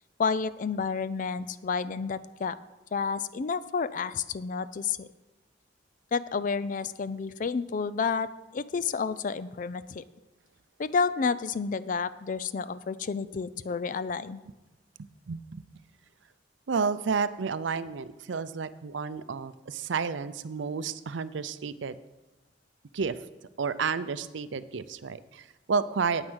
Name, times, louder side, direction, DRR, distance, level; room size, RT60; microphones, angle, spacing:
voice 1, 0.2-2.6 2.9-5.1 6.1-10.0 10.8-14.4, left 5 dB, 45° left, 16 dB, 0.4 m, -30 dB
voice 2, 15.3-15.6 16.7-22.0 22.9-23.2 23.6-26.3, right 5 dB, 80° right, 14 dB, 0.5 m, -31 dB
9.5 x 9.0 x 6.3 m, 1.1 s
head